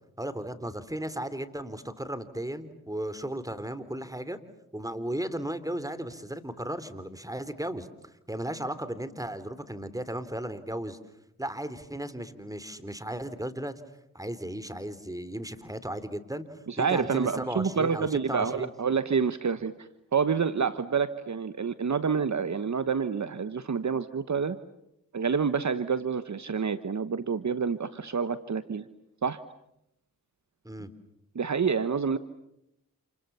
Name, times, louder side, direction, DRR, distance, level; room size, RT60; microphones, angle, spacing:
voice 1, 0.2-4.4 4.7-7.9 8.3-11.0 11.4-13.7 14.1-18.7 30.6-30.9, right 1 dB, 10° right, 13 dB, 3.5 m, -35 dB
voice 2, 16.7-24.6 25.1-28.8 29.2-29.4 31.3-32.2, right 6 dB, 50° right, 13 dB, 1.3 m, -28 dB
29.5 x 28.5 x 7.0 m, 0.82 s
cardioid pair, 40°, 35 cm